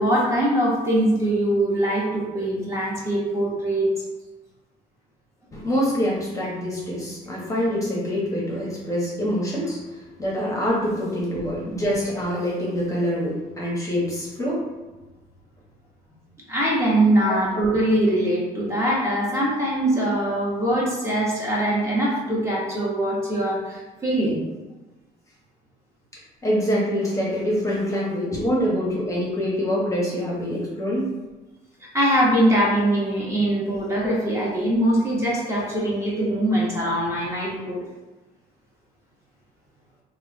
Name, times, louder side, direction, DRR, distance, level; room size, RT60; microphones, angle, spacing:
voice 1, 0.0-3.9 16.5-24.4 31.9-37.8, right 1 dB, 15° right, -6 dB, 0.8 m, -22 dB
voice 2, 5.5-14.6 17.2-17.4 26.4-31.1, equal, 20° left, -5 dB, 0.8 m, -25 dB
2.3 x 2.1 x 3.9 m, 1.1 s
cardioid pair, 110°, 17 cm